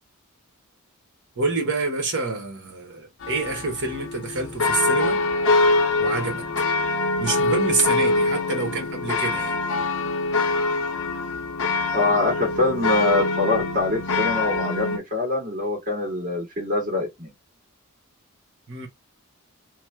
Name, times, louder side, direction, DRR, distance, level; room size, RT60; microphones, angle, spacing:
voice 1, 1.4-5.2 6.0-6.5 7.2-9.6 18.7-18.9, right 3 dB, 55° right, 1.2 m, -27 dB
sound 1, 3.2-15.0, left 3 dB, 60° left, 0.7 m, -24 dB
voice 2, 11.9-17.3, left 3 dB, 35° right, 1.8 m, -24 dB
3.2 x 2.1 x 3.1 m
head